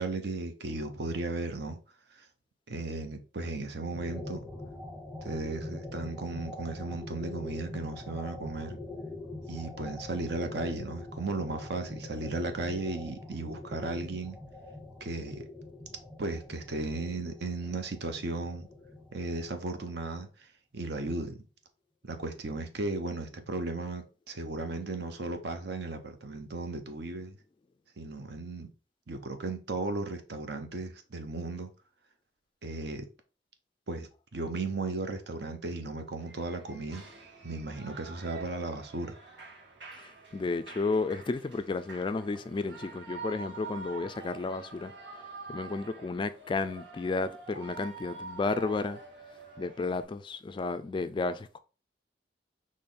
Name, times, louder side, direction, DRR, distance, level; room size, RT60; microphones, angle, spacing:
voice 1, 0.0-1.8 2.2-2.3 2.7-4.4 5.2-8.8 9.5-14.4 15.0-15.5 16.2-18.7 19.1-20.3 20.7-21.4 22.0-27.4 28.0-28.7 29.1-31.7 32.6-33.1 33.9-37.0 37.4-39.2, right 3 dB, 65° right, 0.7 m, -35 dB
sound 1, 3.9-20.0, left 2 dB, 15° right, 1.2 m, -43 dB
Shout / Cheering, 36.2-50.0, right 4 dB, 85° right, 1.8 m, -46 dB
voice 2, 40.0-44.9 45.5-49.0 49.6-51.6, left 3 dB, 25° left, 0.3 m, -32 dB
4.3 x 3.1 x 3.7 m
head